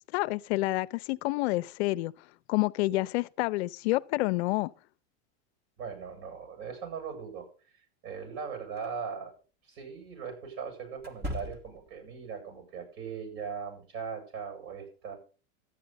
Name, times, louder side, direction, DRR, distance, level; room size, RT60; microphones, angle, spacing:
voice 1, 0.1-2.1 2.5-4.7, left 19 dB, 60° left, 0.5 m, -28 dB
voice 2, 5.8-7.8 8.0-9.3 9.6-15.2, right 6 dB, 55° right, 8.0 m, -39 dB
sound 1, 8.8-8.9 11.0-12.0, equal, 25° right, 1.4 m, -38 dB
13.5 x 9.3 x 4.1 m
supercardioid pair, 140°, 36 cm